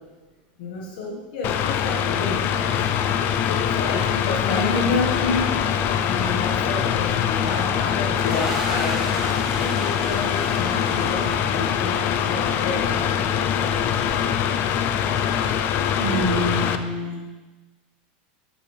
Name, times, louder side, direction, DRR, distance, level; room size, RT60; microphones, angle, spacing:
voice 1, 0.6-3.1 3.4-5.6 6.0-14.3, left 3 dB, 65° left, -2 dB, 1.5 m, -30 dB
Mechanical fan, 1.4-16.8, left 9 dB, 40° left, 0.4 m, -23 dB
sound 1, 5.2-13.0, left 3 dB, 25° left, 0.8 m, -37 dB
sound 2, 7.4-11.9, right 1 dB, 5° right, 1.0 m, -36 dB
voice 2, 16.0-17.2, right 1 dB, 80° right, -2 dB, 2.0 m, -26 dB
6.9 x 6.8 x 3.3 m, 1.2 s
supercardioid pair, 140°, 5 cm